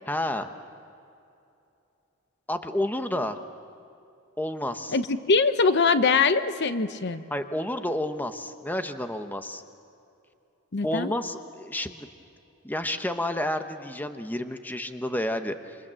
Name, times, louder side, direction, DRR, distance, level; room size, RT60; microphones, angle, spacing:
voice 1, 0.1-0.5 2.5-3.4 4.4-5.0 7.3-9.6 10.8-12.1 12.6-15.8, left 1 dB, 10° left, 8 dB, 1.0 m, -30 dB
voice 2, 4.9-7.2 10.7-11.1, left 4 dB, 55° left, 11 dB, 0.9 m, -22 dB
27.0 x 25.5 x 7.5 m, 2.7 s
head